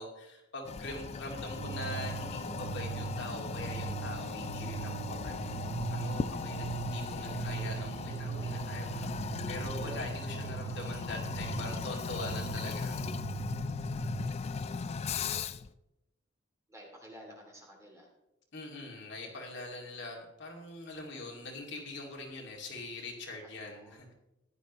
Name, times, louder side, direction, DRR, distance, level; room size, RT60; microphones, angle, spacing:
voice 1, 0.0-5.4 5.9-13.0 18.5-24.1, left 2 dB, 60° left, 0 dB, 2.4 m, -43 dB
Toilet flush, 0.6-15.7, left 5 dB, 30° left, 0.3 m, -38 dB
sound 1, 1.5-14.3, right 7 dB, 80° right, 0.3 m, -40 dB
voice 2, 16.7-18.1 23.4-24.1, equal, 15° right, -1 dB, 2.7 m, -52 dB
15.0 x 11.0 x 3.1 m, 0.93 s
head